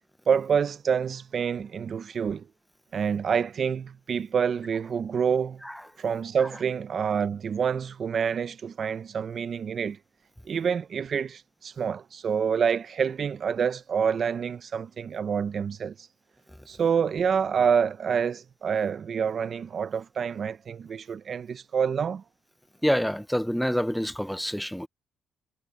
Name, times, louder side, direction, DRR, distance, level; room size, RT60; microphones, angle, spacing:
voice 1, 0.3-2.5 2.9-5.6 6.0-10.0 10.4-16.1 16.7-22.2, right 7 dB, 50° right, 0.8 m, -27 dB
voice 2, 22.8-24.9, equal, ahead, 0.9 m, -26 dB
cardioid pair, 90°, 0 cm